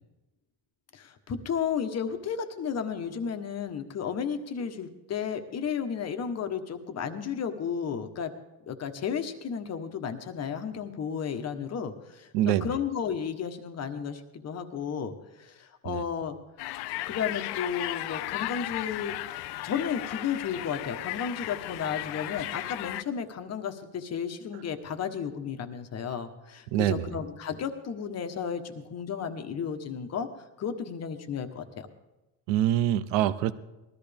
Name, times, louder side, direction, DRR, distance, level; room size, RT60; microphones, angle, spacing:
voice 1, 0.9-8.3 8.7-16.4 17.1-19.1 19.6-30.3 30.6-31.9, left 7 dB, 35° left, 7 dB, 1.2 m, -33 dB
voice 2, 12.3-12.8 15.9-16.0 26.7-27.1 32.5-33.5, right 12 dB, 85° right, 15 dB, 0.8 m, -25 dB
sound 1, 16.6-23.0, left 16 dB, 65° left, 0.6 m, -35 dB
19.5 x 13.5 x 3.5 m, 1.0 s
cardioid pair, 125°, 43 cm